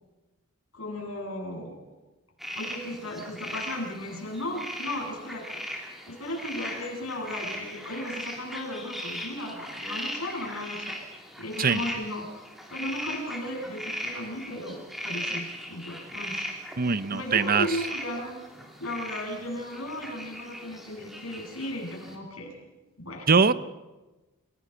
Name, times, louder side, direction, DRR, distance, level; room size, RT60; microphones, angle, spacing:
voice 1, 0.7-1.8 2.5-5.6 6.0-11.0 11.4-12.4 12.7-16.5 16.7-18.4 18.8-22.5 23.0-23.3, left 1 dB, 70° left, -1 dB, 8.0 m, -35 dB
sound 1, 2.4-22.1, equal, ahead, 3.1 m, -39 dB
voice 2, 16.8-17.7 23.3-23.5, right 5 dB, 40° right, 15 dB, 0.7 m, -22 dB
28.5 x 17.0 x 5.8 m, 1.1 s
head